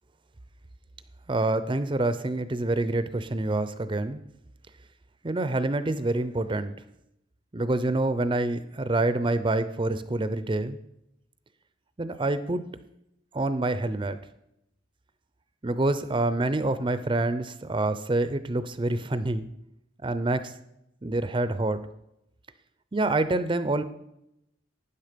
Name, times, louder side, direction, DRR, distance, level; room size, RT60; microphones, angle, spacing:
voice 1, 1.3-4.2 5.2-6.7 7.5-10.8 12.0-12.6 13.3-14.2 15.6-19.5 20.0-20.5 21.0-21.8 22.9-23.8, right 2 dB, 25° right, 12 dB, 0.5 m, -27 dB
12.5 x 9.5 x 5.1 m, 0.83 s
head